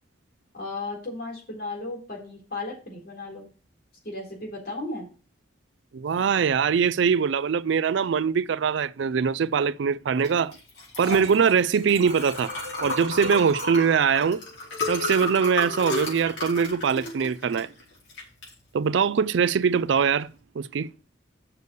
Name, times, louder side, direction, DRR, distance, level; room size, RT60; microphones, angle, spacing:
voice 1, 0.5-3.5 4.0-5.1, left 2 dB, 55° left, 4.0 m, -35 dB
voice 2, 5.9-10.6 11.0-12.5 12.8-14.4 14.9-17.7 18.7-20.3 20.6-20.9, right 6 dB, 70° right, 0.4 m, -22 dB
Liquid, 10.2-20.4, left 2 dB, 70° left, 4.7 m, -34 dB
6.8 x 6.5 x 6.7 m
head